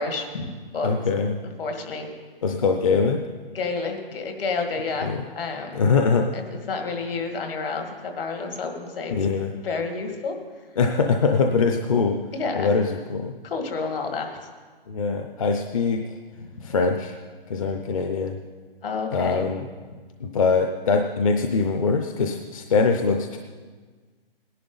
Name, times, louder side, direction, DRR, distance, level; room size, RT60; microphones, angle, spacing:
voice 1, 0.0-0.9 1.6-2.1 3.5-5.8 6.3-9.1 9.5-10.4 12.3-12.8 13.4-14.4 16.4-16.6 18.8-19.5, left 4 dB, 65° left, 4 dB, 2.1 m, -30 dB
voice 2, 0.8-1.4 2.4-3.2 5.0-5.2 5.7-6.3 9.1-9.5 10.8-12.2 12.5-13.3 14.9-16.0 16.6-17.2 17.5-18.4 19.1-19.6 20.2-23.4, left 4 dB, 35° left, 4 dB, 0.6 m, -22 dB
18.0 x 11.0 x 4.0 m, 1.5 s
hypercardioid pair, 165°, 30 cm